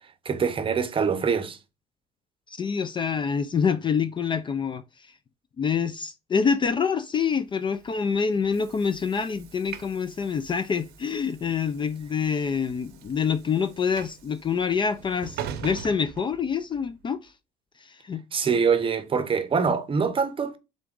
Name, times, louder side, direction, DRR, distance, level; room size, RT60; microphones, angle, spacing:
voice 1, 0.2-1.6 18.3-20.6, right 6 dB, 30° right, 0.7 m, -24 dB
voice 2, 2.5-5.1 5.6-17.3 17.8-18.2, left 6 dB, 30° left, 0.3 m, -26 dB
Train / Sliding door, 7.7-16.9, right 9 dB, 75° right, 0.7 m, -43 dB
3.8 x 3.5 x 3.6 m
cardioid pair, 110°, 17 cm